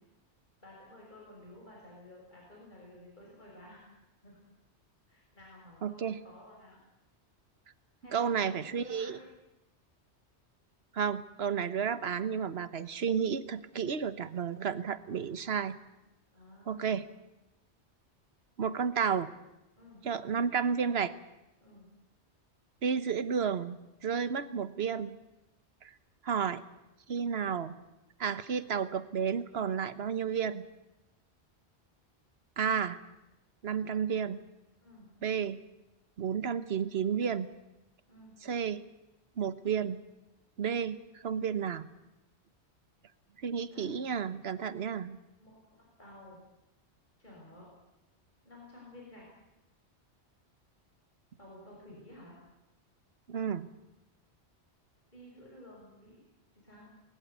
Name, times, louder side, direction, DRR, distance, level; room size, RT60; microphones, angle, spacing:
voice 1, 0.6-3.9 4.2-4.4 5.1-6.8 8.0-9.3 14.9-15.4 16.3-17.1 19.8-20.0 21.6-21.8 34.8-35.1 38.1-38.3 43.7-44.0 45.4-46.4 47.2-47.7 48.4-49.2 51.4-52.3 55.1-56.2 56.6-56.9, left 1 dB, 40° left, -3 dB, 6.5 m, -53 dB
voice 2, 5.8-6.2 8.1-9.2 10.9-15.8 16.7-17.1 18.6-19.3 20.0-21.1 22.8-25.1 25.8-25.9 26.2-26.6 27.1-27.8 28.2-30.6 32.6-33.0 33.6-34.4 35.2-35.6 36.2-37.5 38.4-38.8 39.4-40.0 40.6-41.9 43.4-45.2 53.3-53.7, right 7 dB, 65° right, 14 dB, 1.3 m, -32 dB
20.5 x 20.5 x 8.2 m, 0.97 s
omnidirectional pair, 1.2 m